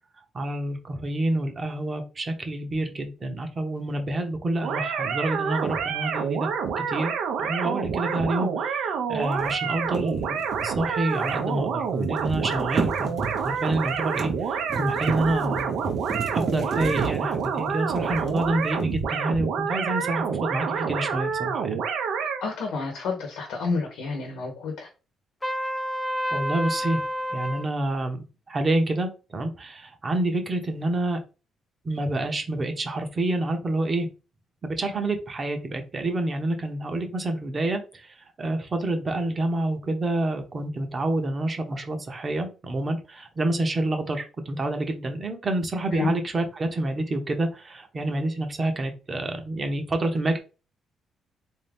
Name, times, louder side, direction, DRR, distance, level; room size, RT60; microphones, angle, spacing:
voice 1, 0.3-6.5 6.8-7.1 7.4-10.4 10.6-13.2 13.4-15.7 16.3-21.8 26.3-27.0 27.3-31.2 31.8-34.1 34.6-50.4, right 2 dB, 35° right, 5 dB, 0.9 m, -28 dB
sound 1, 4.6-22.4, right 6 dB, 85° right, 0.7 m, -28 dB
sound 2, 9.3-11.6 11.8-19.1, right 5 dB, 65° right, 1.1 m, -33 dB
voice 2, 22.4-24.9 45.9-46.1, left 4 dB, 90° left, 2 dB, 1.0 m, -29 dB
Trumpet, 25.4-27.7, equal, 15° left, 0.6 m, -29 dB
3.6 x 2.7 x 3.5 m, 0.32 s
cardioid pair, 90°, 0 cm